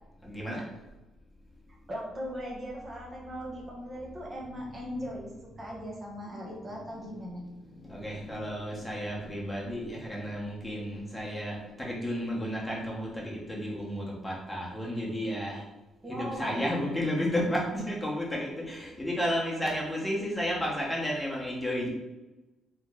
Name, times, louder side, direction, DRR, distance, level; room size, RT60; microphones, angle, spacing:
voice 1, 0.2-0.6 3.9-5.0 5.3-5.6 6.7-15.6 16.1-21.9, equal, 5° left, -4 dB, 1.2 m, -33 dB
voice 2, 1.9-7.5 16.0-16.7, equal, 30° right, -3 dB, 1.0 m, -39 dB
3.4 x 3.1 x 3.8 m, 1.1 s
cardioid pair, 90°, 0 cm